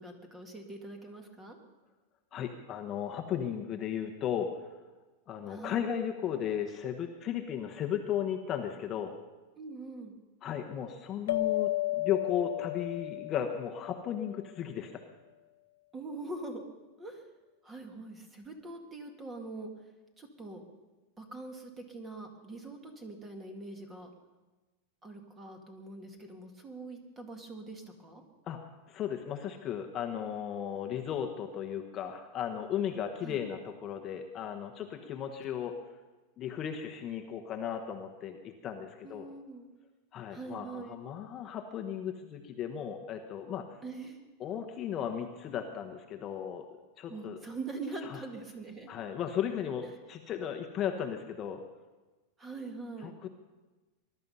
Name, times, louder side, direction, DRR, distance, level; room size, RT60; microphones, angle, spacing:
voice 1, 0.0-1.6 5.5-5.8 9.6-10.1 15.9-16.6 17.0-17.2 17.6-19.7 20.2-20.6 21.2-24.1 25.0-28.2 33.2-33.4 39.0-39.7 40.3-41.0 43.8-44.2 47.1-48.9 52.4-53.2, right 3 dB, 15° right, 4 dB, 1.9 m, -43 dB
voice 2, 2.3-4.5 5.3-9.1 10.4-15.0 28.5-35.7 36.4-39.3 40.1-43.8 44.4-46.7 47.0-47.4 48.0-48.2 48.9-51.6 53.0-53.3, left 9 dB, 25° left, 4 dB, 1.1 m, -35 dB
sound 1, 11.3-14.3, left 16 dB, 80° left, 0.6 m, -33 dB
20.5 x 12.0 x 5.5 m, 1.2 s
supercardioid pair, 160°, 0 cm